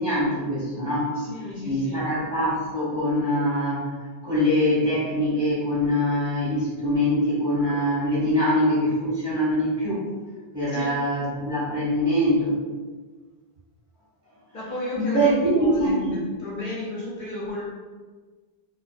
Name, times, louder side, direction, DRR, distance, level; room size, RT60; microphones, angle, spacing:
voice 1, 0.0-1.2 1.6-4.0 4.2-10.1 10.5-12.6 14.9-16.2, equal, 25° right, -10 dB, 0.9 m, -23 dB
voice 2, 1.1-2.1 10.7-10.9 14.5-17.6, left 2 dB, 60° left, -7 dB, 0.6 m, -34 dB
2.5 x 2.2 x 2.3 m, 1.4 s
omnidirectional pair, 1.0 m